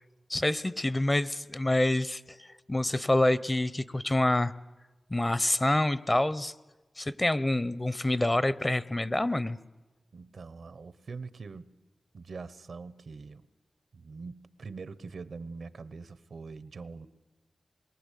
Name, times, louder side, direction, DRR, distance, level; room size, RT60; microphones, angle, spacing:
voice 1, 0.3-4.5 5.1-6.5 7.0-9.6, left 1 dB, 25° left, 16 dB, 0.8 m, -27 dB
voice 2, 10.1-11.7 12.1-13.4 13.9-17.1, right 4 dB, 75° right, 14 dB, 1.0 m, -43 dB
28.0 x 22.5 x 8.4 m, 1.2 s
cardioid pair, 65°, 0 cm